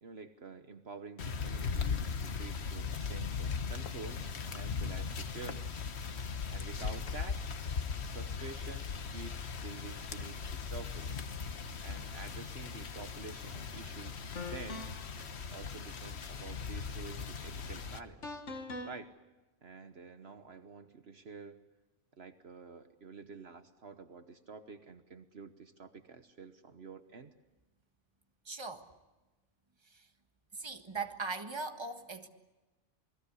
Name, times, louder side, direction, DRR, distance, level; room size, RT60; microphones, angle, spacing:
voice 1, 0.0-5.8 6.5-7.4 8.1-11.3 11.8-14.2 14.5-14.9 15.5-18.4 18.8-19.1 19.6-21.6 22.2-27.3, right 4 dB, 60° right, 8 dB, 1.4 m, -49 dB
sound 1, 1.2-18.0, left 5 dB, 60° left, 1.4 m, -39 dB
sound 2, 13.5-13.7 14.3-15.2 18.2-19.0, left 2 dB, 75° left, 2.1 m, -42 dB
voice 2, 28.4-28.9 29.9-30.0 30.6-32.3, right 4 dB, 20° right, 6 dB, 1.6 m, -39 dB
28.5 x 21.0 x 8.3 m, 1.1 s
omnidirectional pair, 1.2 m